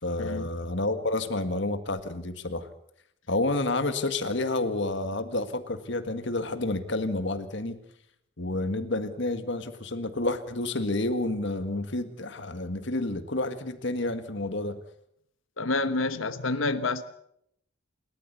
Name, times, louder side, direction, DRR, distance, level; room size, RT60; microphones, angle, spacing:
voice 1, 0.0-2.7 3.3-7.8 8.4-14.8, left 2 dB, 60° left, 1.9 m, -29 dB
voice 2, 15.6-17.0, left 3 dB, 75° left, 1.2 m, -28 dB
28.5 x 13.5 x 8.3 m
head